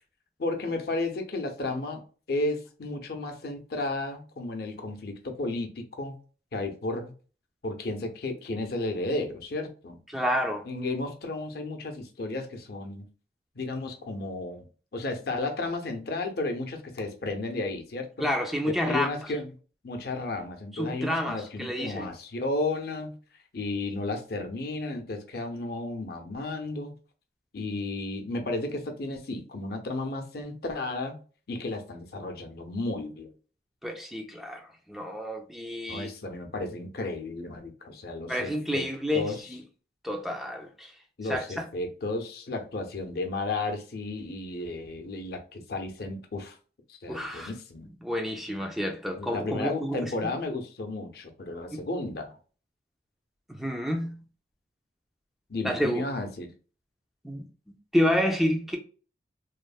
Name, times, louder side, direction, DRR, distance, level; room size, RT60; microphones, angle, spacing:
voice 1, 0.4-2.0 2.3-6.2 6.5-7.1 7.6-10.0 10.7-13.1 13.6-14.6 14.9-18.3 18.8-19.5 19.8-23.2 23.5-26.9 27.5-31.2 31.5-33.3 35.9-38.8 39.1-39.6 41.2-46.6 46.9-47.9 49.2-52.4 55.5-56.5, left 2 dB, 60° left, 0.6 m, -33 dB
voice 2, 10.1-10.7 18.2-19.1 20.7-22.1 33.8-36.1 38.3-39.6 40.0-40.9 41.3-41.6 47.1-47.5 48.0-50.3 51.7-51.8 53.5-54.2 55.6-56.0 57.2-58.8, equal, ahead, 0.3 m, -29 dB
3.0 x 2.0 x 2.3 m
head